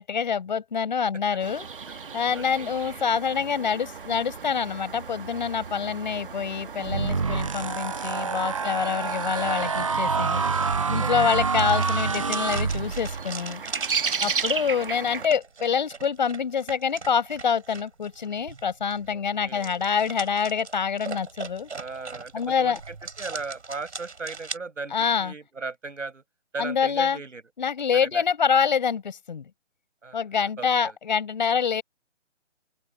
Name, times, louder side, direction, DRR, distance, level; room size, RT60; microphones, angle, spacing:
voice 1, 0.0-1.7 2.1-10.4 10.9-13.6 14.2-21.7 22.3-22.8 24.9-25.3 26.6-27.2 27.6-29.5 30.1-31.8, left 6 dB, 40° left, 6.0 m, -26 dB
sound 1, 1.4-15.3, right 6 dB, 45° right, 1.9 m, -35 dB
voice 2, 2.3-2.7 8.6-8.9 11.0-11.3 14.1-14.4 19.1-19.9 21.7-26.2 26.5-27.4 28.0-28.2 30.0-30.9, right 4 dB, 90° right, 8.0 m, -38 dB
sound 2, 6.8-13.3, right 5 dB, 25° right, 0.9 m, -27 dB
sound 3, 9.6-24.6, right 4 dB, 65° right, 5.9 m, -40 dB
open air
figure-of-eight pair, 165°, 36 cm